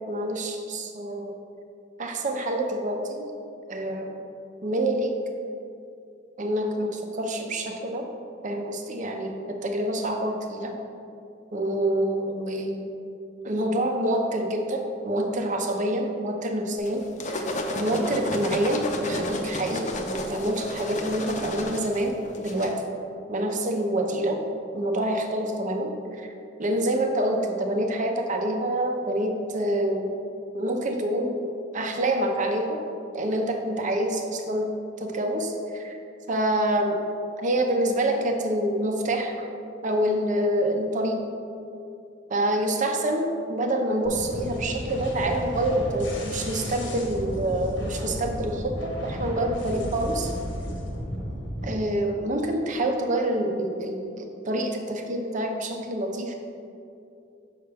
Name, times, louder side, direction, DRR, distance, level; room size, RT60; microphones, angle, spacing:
voice 1, 0.1-1.3 2.0-3.2 3.7-4.1 4.6-5.1 6.4-8.0 8.4-10.7 11.5-12.9 13.4-17.4 17.7-22.8 23.3-24.4 24.7-26.3 26.6-30.1 30.5-31.4 31.7-32.8 33.1-34.7 35.0-36.0 36.3-37.0 37.4-39.3 39.8-41.2 42.3-50.3 51.6-56.3, right 1 dB, 45° right, 3 dB, 0.7 m, -27 dB
sound 1, 16.8-22.7, left 1 dB, 40° left, 0.6 m, -31 dB
sound 2, 44.0-51.7, equal, 85° left, 1.2 m, -33 dB
6.7 x 5.7 x 3.4 m, 2.6 s
head